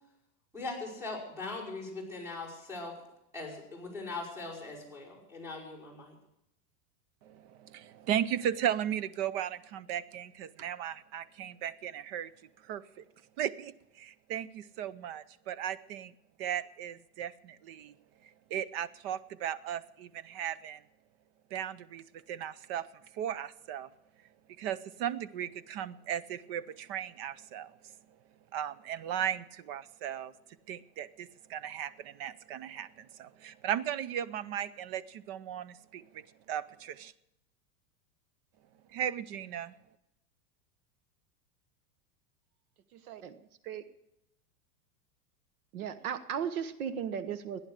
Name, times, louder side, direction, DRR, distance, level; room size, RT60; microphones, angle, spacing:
voice 1, 0.5-2.9 3.3-6.1, left 3 dB, 5° right, -4 dB, 5.3 m, -40 dB
voice 2, 7.7-12.3 12.7-12.8 13.4-13.7 14.0-16.1 16.4-17.9 18.5-20.8 21.5-22.0 22.3-22.8 23.2-23.9 24.6-27.7 28.5-30.3 30.7-32.9 33.2-36.0 36.5-37.1 38.9-39.7, right 10 dB, 40° right, 17 dB, 0.6 m, -36 dB
voice 3, 42.9-43.8 45.7-47.6, right 8 dB, 70° right, 12 dB, 1.2 m, -36 dB
15.5 x 10.5 x 6.5 m, 0.83 s
supercardioid pair, 160°, 45 cm